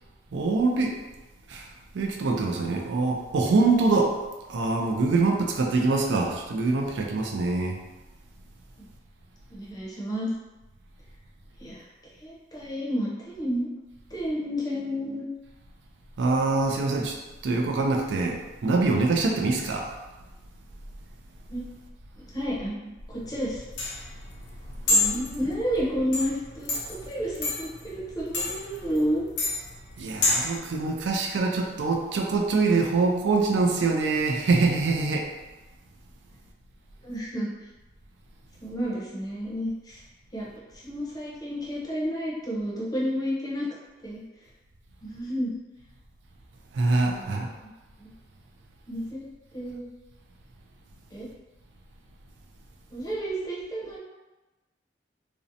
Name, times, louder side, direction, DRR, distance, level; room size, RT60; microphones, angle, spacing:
voice 1, 0.3-1.0 1.5-1.7 1.9-4.2 4.5-7.8 16.2-17.2 17.4-20.0 30.0-35.3 46.7-47.5, right 3 dB, 75° right, 1 dB, 0.4 m, -24 dB
voice 2, 9.5-10.3 11.6-11.9 12.2-13.7 14.1-15.2 21.5-21.6 22.3-23.6 24.8-29.2 37.0-37.5 38.6-40.0 40.3-40.5 40.7-43.7 44.0-44.2 45.0-45.5 47.0-47.5 48.0-48.1 48.9-49.3 49.5-49.9 51.1-51.3 52.9-54.0, equal, 20° left, -5 dB, 0.6 m, -31 dB
sound 1, 23.2-30.6, left 2 dB, 65° left, 0.5 m, -29 dB
2.6 x 2.0 x 2.6 m, 1.1 s
head